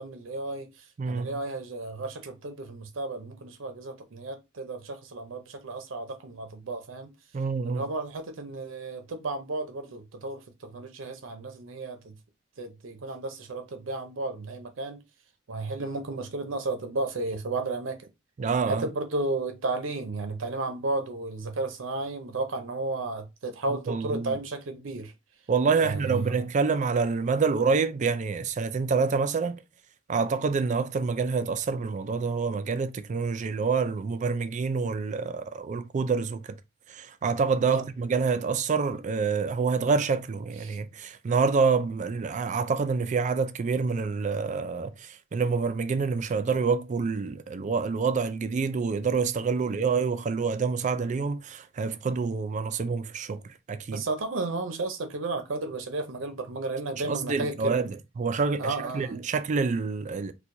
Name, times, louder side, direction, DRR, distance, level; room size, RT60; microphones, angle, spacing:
voice 1, 0.0-7.1 7.6-12.1 12.6-15.0 15.5-18.1 18.7-25.1 25.8-26.4 37.7-37.8 40.6-40.8 49.6-49.7 53.9-57.8 58.6-59.2, right 2 dB, 80° right, 0.6 m, -33 dB
voice 2, 1.0-1.3 7.3-7.8 18.4-18.8 23.9-24.3 25.5-29.6 30.1-36.4 36.9-53.4 53.7-54.0 57.1-60.3, right 5 dB, 40° right, 0.3 m, -27 dB
4.4 x 2.3 x 2.6 m
head